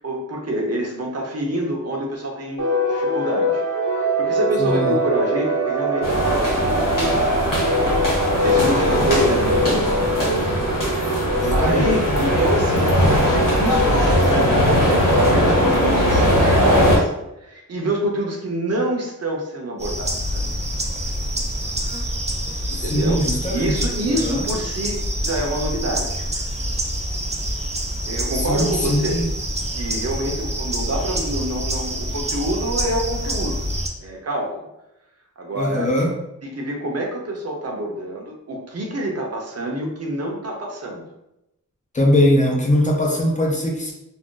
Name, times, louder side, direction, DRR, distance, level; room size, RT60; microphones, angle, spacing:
voice 1, 0.0-3.6 3.9-7.3 8.4-9.9 11.5-17.1 17.4-20.6 22.7-23.2 23.5-26.2 28.1-29.2 29.7-33.6 34.0-34.6 35.4-35.9 36.4-41.0, right 1 dB, 50° right, 0 dB, 0.7 m, -27 dB
sound 1, 2.6-17.0, right 1 dB, 70° right, 1.0 m, -24 dB
voice 2, 4.6-4.9 8.5-9.1 11.4-11.9 22.7-24.4 28.5-29.3 35.6-36.1 41.9-43.9, left 1 dB, 25° left, -1 dB, 0.6 m, -21 dB
sound 2, 6.0-17.0, equal, 85° left, 1.1 m, -19 dB
sound 3, 19.8-33.9, equal, 20° right, 0.4 m, -26 dB
2.5 x 2.0 x 3.7 m, 0.89 s
wide cardioid pair, 105°, 32 cm